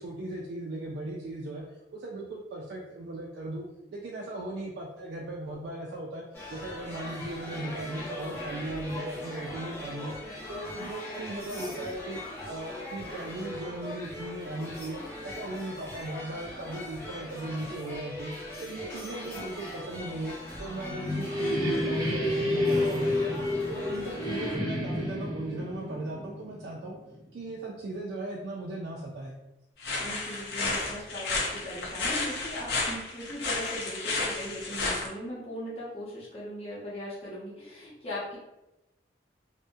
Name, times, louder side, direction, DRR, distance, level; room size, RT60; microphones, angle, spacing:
voice 1, 0.0-1.6 1.9-3.6 3.9-6.2 6.5-10.1 10.5-18.3 18.6-23.3 23.7-27.0 27.3-29.4, right 2 dB, 75° right, -3 dB, 0.3 m, -37 dB
sound 1, 6.3-24.6, left 1 dB, 10° left, 0.5 m, -40 dB
sound 2, 20.4-27.1, left 1 dB, 20° right, 0.8 m, -30 dB
sound 3, 29.8-35.1, left 3 dB, 65° left, 0.5 m, -32 dB
voice 2, 30.0-38.4, equal, 35° left, -8 dB, 0.8 m, -39 dB
2.6 x 2.1 x 2.3 m, 0.93 s
head